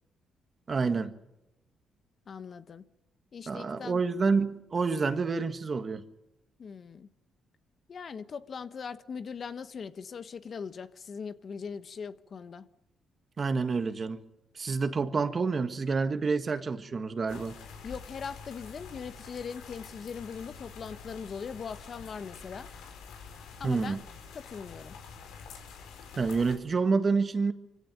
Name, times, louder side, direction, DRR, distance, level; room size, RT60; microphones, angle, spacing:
voice 1, 0.7-1.1 3.5-6.0 13.4-14.2 14.6-17.6 23.6-24.0 26.2-27.5, right 4 dB, 35° right, 1.7 m, -28 dB
voice 2, 2.3-2.8 3.3-4.0 6.6-7.1 7.9-12.7 17.8-22.7 23.6-24.0 24.3-24.9, left 6 dB, 50° left, 1.2 m, -40 dB
sound 1, 17.3-26.6, left 5 dB, 90° left, 4.5 m, -47 dB
24.0 x 16.0 x 9.2 m
cardioid pair, 90°, 0 cm